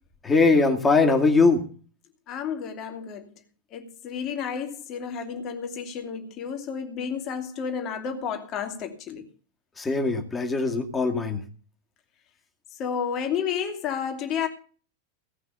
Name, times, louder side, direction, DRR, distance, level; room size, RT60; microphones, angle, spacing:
voice 1, 0.2-1.6 9.8-11.4, left 3 dB, 15° left, 2.3 m, -21 dB
voice 2, 2.3-3.3 3.7-9.3 12.8-14.5, left 7 dB, 35° left, 2.6 m, -31 dB
17.5 x 5.9 x 7.0 m
figure-of-eight pair, 90°, 0 cm